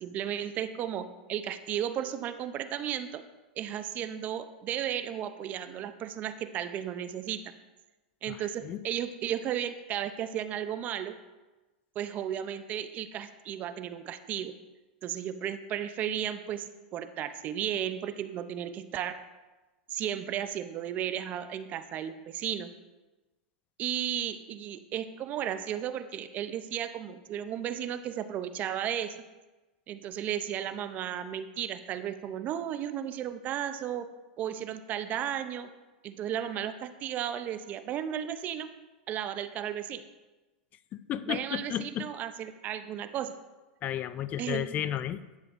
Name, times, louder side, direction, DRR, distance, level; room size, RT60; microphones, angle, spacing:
voice 1, 0.0-3.2 3.6-7.4 8.2-11.1 12.0-14.5 15.0-19.2 19.9-22.7 23.8-29.2 29.9-34.1 34.4-35.7 36.0-38.7 39.1-40.0 41.3-43.3 44.4-44.7, right 10 dB, 35° right, 11 dB, 0.6 m, -34 dB
voice 2, 41.1-42.0 43.8-45.4, left 11 dB, 35° left, 14 dB, 0.4 m, -33 dB
10.5 x 7.7 x 2.5 m, 1.1 s
hypercardioid pair, 120°, 5 cm